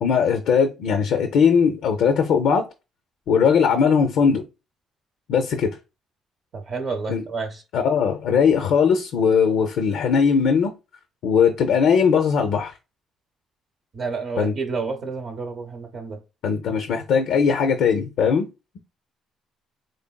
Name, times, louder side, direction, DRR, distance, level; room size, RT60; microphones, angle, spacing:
voice 1, 0.0-2.6 3.3-4.4 5.3-5.7 7.1-7.2 7.7-10.7 11.2-12.7 14.4-14.5 16.4-18.5, left 6 dB, 75° left, 0.5 m, -19 dB
voice 2, 6.5-7.6 13.9-16.2, right 4 dB, 50° right, 0.7 m, -30 dB
3.9 x 3.2 x 2.2 m
cardioid pair, 95°, 0 cm